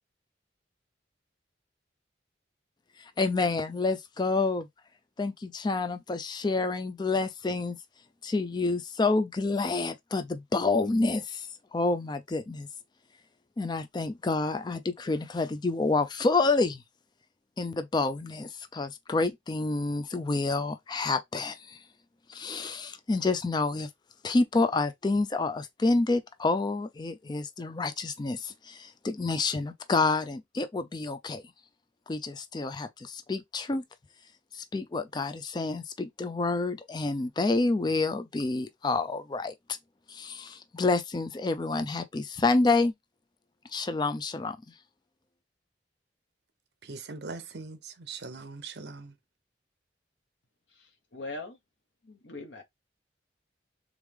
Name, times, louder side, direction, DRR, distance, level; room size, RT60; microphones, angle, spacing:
voice 1, 3.0-4.7 5.2-7.8 8.2-12.7 13.6-16.8 17.6-21.8 22.3-23.9 24.2-31.4 32.1-33.8 34.5-39.5 40.1-42.9 43.7-44.6, left 3 dB, 25° left, 0.4 m, -28 dB
voice 2, 46.8-49.2, right 4 dB, 65° right, 0.8 m, -41 dB
voice 3, 50.7-51.6 52.0-52.6, left 2 dB, 80° left, 1.2 m, -41 dB
3.6 x 3.3 x 3.5 m
head